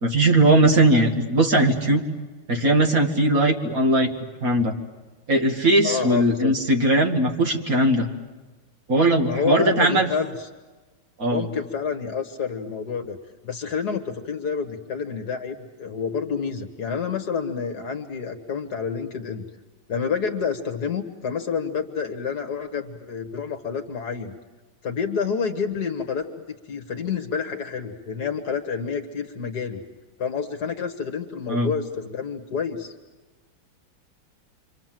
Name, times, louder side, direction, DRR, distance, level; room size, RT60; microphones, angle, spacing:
voice 1, 0.0-2.0 2.5-4.1 4.4-4.8 5.3-8.1 8.9-10.1 11.2-11.5 31.5-31.7, right 1 dB, 45° right, 3 dB, 2.1 m, -19 dB
voice 2, 5.8-6.5 9.2-10.3 11.2-13.2 13.4-19.5 19.9-24.4 24.8-26.3 26.7-29.8 30.2-32.9, left 6 dB, 50° left, 6 dB, 1.9 m, -28 dB
29.0 x 25.0 x 7.6 m, 1.2 s
omnidirectional pair, 2.3 m